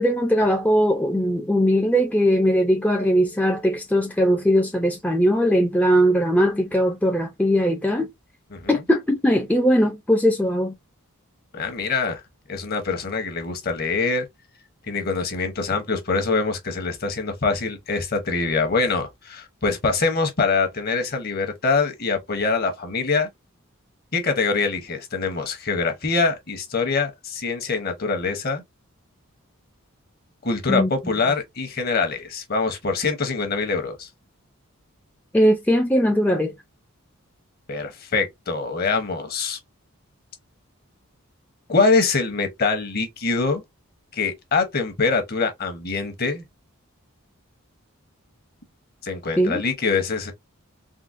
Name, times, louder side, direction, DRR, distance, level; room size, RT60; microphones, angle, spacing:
voice 1, 0.0-8.1 8.7-10.7 30.7-30.9 35.3-36.5 49.4-49.6, equal, 5° left, 0.3 m, -20 dB
voice 2, 11.5-12.2 12.5-14.2 14.9-23.3 24.1-28.6 30.4-34.1 37.7-39.6 41.7-43.6 44.1-46.4 49.0-50.3, left 4 dB, 45° left, 0.8 m, -24 dB
3.7 x 2.0 x 2.5 m
head